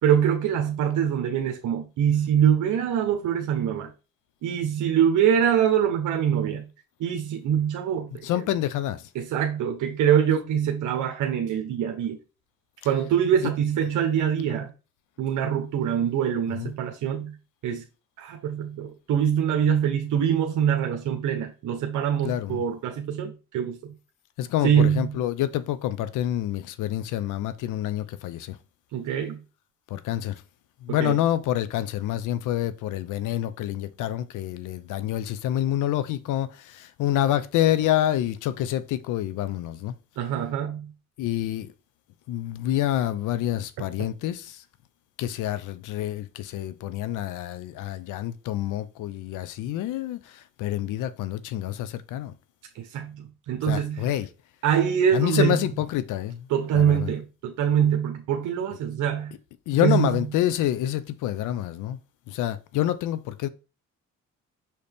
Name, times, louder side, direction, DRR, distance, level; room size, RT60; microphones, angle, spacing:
voice 1, 0.0-3.9 4.4-6.7 7.0-8.1 9.1-12.2 12.8-14.7 15.2-17.3 17.6-17.8 18.2-23.9 24.6-25.2 28.9-29.4 30.9-31.2 40.2-40.9 44.0-44.1 52.7-54.2 54.6-55.6 56.5-59.3 59.8-60.2, right 9 dB, 80° right, 1.0 m, -24 dB
voice 2, 8.2-9.0 16.6-16.7 22.2-22.6 24.4-28.6 29.9-30.3 30.8-39.9 41.2-41.7 42.3-44.6 45.2-50.2 50.6-52.3 53.7-54.3 55.1-56.4 56.7-57.1 59.7-62.0 62.3-63.5, left 12 dB, 90° left, 0.7 m, -27 dB
6.4 x 4.3 x 3.5 m
cardioid pair, 90°, 30 cm